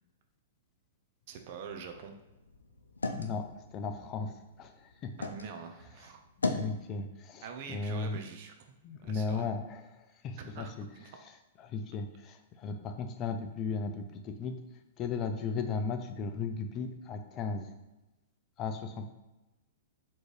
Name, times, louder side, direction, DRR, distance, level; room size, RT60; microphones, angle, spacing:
voice 1, 1.3-2.2 5.2-6.2 7.4-8.5 9.0-9.5 10.4-11.1, right 6 dB, 50° right, 4 dB, 0.6 m, -44 dB
sound 1, 1.7-5.5 5.9-6.8, left 3 dB, 85° left, 0.4 m, -38 dB
voice 2, 3.2-5.3 6.4-8.2 8.8-10.9 11.6-14.6 15.0-17.7 18.6-19.1, left 4 dB, 35° left, 6 dB, 0.5 m, -36 dB
4.2 x 3.1 x 3.2 m, 0.99 s
hypercardioid pair, 110°, 0 cm